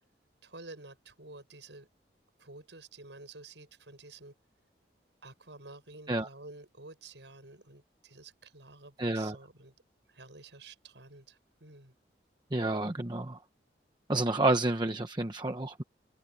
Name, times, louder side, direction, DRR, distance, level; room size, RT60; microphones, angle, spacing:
voice 1, 0.4-1.9 2.4-4.4 5.2-9.7 10.1-11.9, right 3 dB, 90° right, 6.9 m, -50 dB
voice 2, 9.0-9.4 12.5-13.4 14.1-15.8, right 2 dB, 25° right, 1.0 m, -29 dB
open air
head